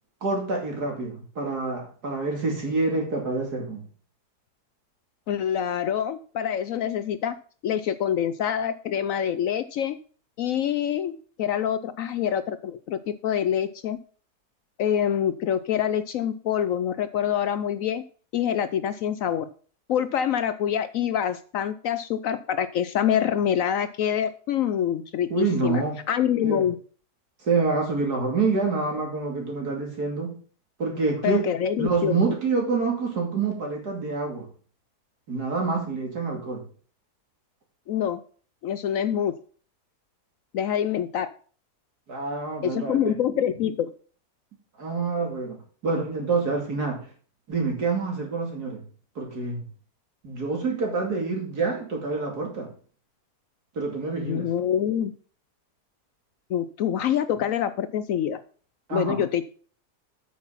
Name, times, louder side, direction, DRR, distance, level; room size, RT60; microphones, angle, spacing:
voice 1, 0.2-3.8 25.3-26.0 26.4-26.6 27.4-30.3 30.8-31.5 31.8-34.5 35.3-36.6 42.1-43.1 44.8-47.1 47.5-48.8 49.1-49.6 50.2-52.7 53.7-54.5 58.9-59.2, right 4 dB, 75° right, 1 dB, 3.1 m, -27 dB
voice 2, 5.3-7.3 7.6-10.0 10.4-14.0 14.8-18.0 18.3-19.5 19.9-26.8 31.2-32.2 37.9-38.2 38.6-39.3 40.5-41.3 42.6-43.9 54.1-55.1 56.5-58.4 58.9-59.5, left 9 dB, 70° left, 13 dB, 0.9 m, -26 dB
8.7 x 6.1 x 5.7 m, 0.42 s
omnidirectional pair, 1.7 m